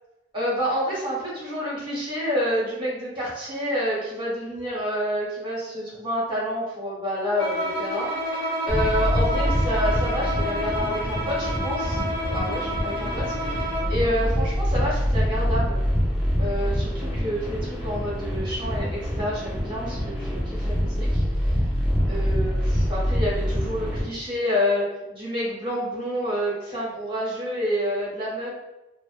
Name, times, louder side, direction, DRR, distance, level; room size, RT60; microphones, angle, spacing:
voice 1, 0.3-12.0 12.3-15.8 16.4-21.6 22.1-28.5, equal, 25° right, -6 dB, 0.9 m, -28 dB
Bowed string instrument, 7.4-14.0, equal, 85° left, 0.8 m, -29 dB
sound 1, 8.7-24.0, equal, 5° right, 0.6 m, -25 dB
2.4 x 2.1 x 2.4 m, 1.0 s
head